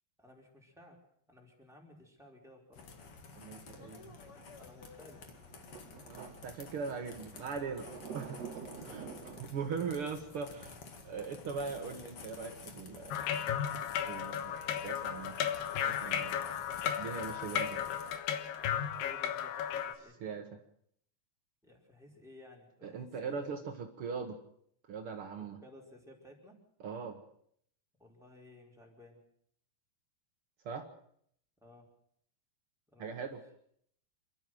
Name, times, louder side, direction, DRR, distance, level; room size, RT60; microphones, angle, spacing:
voice 1, 0.2-1.0 1.3-2.9 4.6-5.2 18.8-20.2 21.6-23.6 25.4-26.6 28.0-29.2 31.6-31.9 32.9-33.3, left 1 dB, ahead, -1 dB, 4.3 m, -57 dB
sound 1, 2.7-18.2, left 4 dB, 45° left, 2.1 m, -52 dB
voice 2, 3.3-4.1 6.1-7.9 8.1-8.5 8.8-9.0 9.4-10.8 11.0-13.5 14.0-15.4 15.8-16.5 17.0-17.8 20.2-20.4 22.8-24.4 24.9-25.6 26.8-27.2 30.6-30.9 33.0-33.4, right 5 dB, 75° right, 4 dB, 1.2 m, -40 dB
sound 2, 4.3-9.4, right 6 dB, 50° right, 2.5 m, -48 dB
sound 3, 13.1-19.9, left 9 dB, 80° left, 3.2 m, -35 dB
27.5 x 12.5 x 7.7 m, 0.66 s
omnidirectional pair, 4.7 m